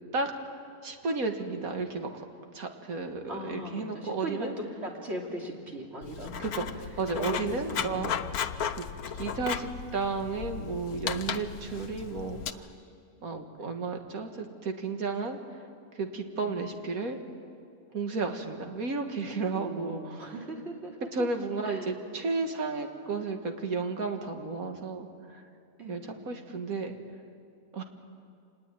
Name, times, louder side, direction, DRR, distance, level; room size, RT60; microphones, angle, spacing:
voice 1, 0.8-2.2 2.5-4.5 6.4-8.1 8.7-8.9 9.1-12.7 13.2-15.4 15.9-17.2 17.9-20.3 21.1-25.4 25.9-27.0 27.7-27.8, right 4 dB, 70° right, 5 dB, 2.2 m, -33 dB
voice 2, 3.3-6.4 6.7-6.9 7.1-8.2 13.6-13.8 16.4-16.5 19.5-21.3 21.6-21.9 25.8-26.0, equal, 45° right, 0 dB, 3.4 m, -39 dB
Writing, 6.0-12.5, left 8 dB, 85° left, 1.3 m, -35 dB
26.0 x 20.0 x 9.2 m, 2.4 s
omnidirectional pair, 1.5 m